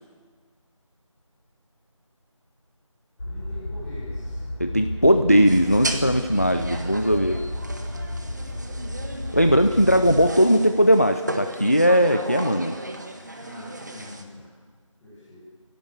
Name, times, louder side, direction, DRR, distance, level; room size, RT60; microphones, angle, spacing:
sound 1, 3.2-10.3, left 1 dB, 45° left, 5.9 m, -33 dB
voice 1, 3.2-4.4 7.9-8.2 13.3-14.5 15.0-15.4, left 1 dB, ahead, -12 dB, 1.4 m, -43 dB
voice 2, 4.6-7.4 9.3-12.7, equal, 30° left, 8 dB, 0.5 m, -19 dB
sound 2, 5.5-14.2, right 1 dB, 35° right, 1.5 m, -36 dB
23.0 x 16.5 x 7.3 m, 1.5 s
figure-of-eight pair, 175°, 17 cm